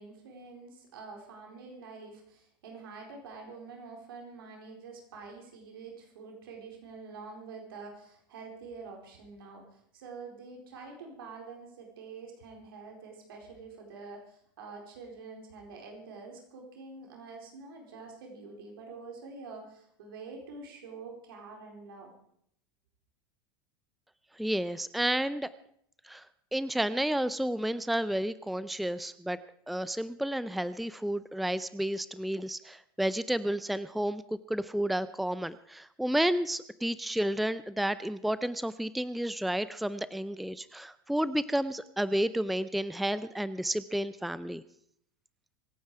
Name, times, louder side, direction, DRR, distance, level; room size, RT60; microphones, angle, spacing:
voice 1, 0.0-22.1, right 4 dB, 80° right, 1 dB, 4.3 m, -46 dB
voice 2, 24.4-25.5 26.0-26.3 26.5-29.4 29.7-34.2 34.5-44.6, right 1 dB, ahead, 15 dB, 0.5 m, -31 dB
25.0 x 9.5 x 4.8 m, 0.67 s
hypercardioid pair, 105°, 12 cm